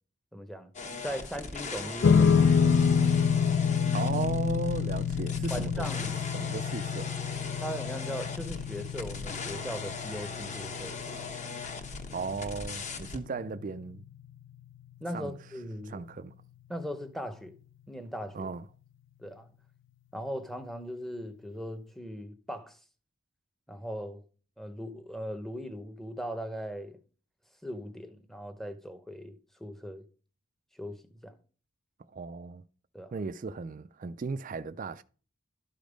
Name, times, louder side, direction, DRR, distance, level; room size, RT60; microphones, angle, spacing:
voice 1, 0.3-0.7 1.0-2.8 5.5-6.2 7.6-11.0 15.0-16.0 16.7-17.6 17.9-18.5 19.2-19.5 20.1-22.8 23.7-24.2 24.6-27.0 27.6-29.3 29.6-30.0 30.7-31.4 32.9-33.1, equal, ahead, 0.8 m, -39 dB
sound 1, 0.7-13.2, left 4 dB, 35° left, 1.0 m, -39 dB
sound 2, 2.0-14.5, left 6 dB, 55° left, 0.3 m, -28 dB
voice 2, 3.9-5.9 6.3-7.2 12.1-14.0 15.1-15.4 15.8-16.3 18.3-18.6 32.1-32.6 33.1-35.0, right 4 dB, 35° right, 0.3 m, -36 dB
12.0 x 5.1 x 5.1 m
head